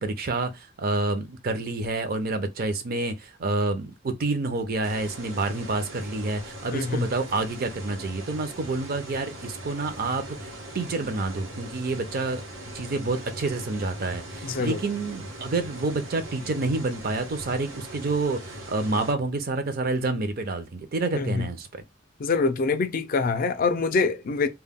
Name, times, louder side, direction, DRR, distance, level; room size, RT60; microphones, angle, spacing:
voice 1, 0.0-12.5 12.7-21.7, right 3 dB, 50° right, 0.5 m, -28 dB
sound 1, 4.8-19.1, right 1 dB, 90° right, 0.9 m, -40 dB
voice 2, 6.7-7.1 14.4-14.8 21.1-21.5 22.2-24.5, left 4 dB, 45° left, 0.4 m, -25 dB
2.2 x 2.1 x 3.5 m
head